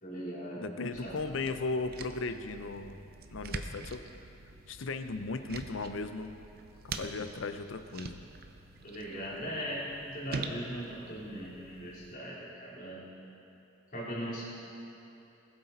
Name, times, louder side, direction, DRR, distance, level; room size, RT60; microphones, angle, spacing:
voice 1, 0.0-0.7 1.0-1.1 8.8-13.0 13.9-14.4, equal, 45° left, -7 dB, 3.2 m, -39 dB
voice 2, 0.6-4.0 4.7-6.4 6.8-8.2, left 3 dB, 70° left, 9 dB, 0.6 m, -36 dB
sound 1, 0.9-12.1, right 3 dB, 50° right, 0.6 m, -45 dB
20.0 x 8.0 x 4.1 m, 2.8 s
head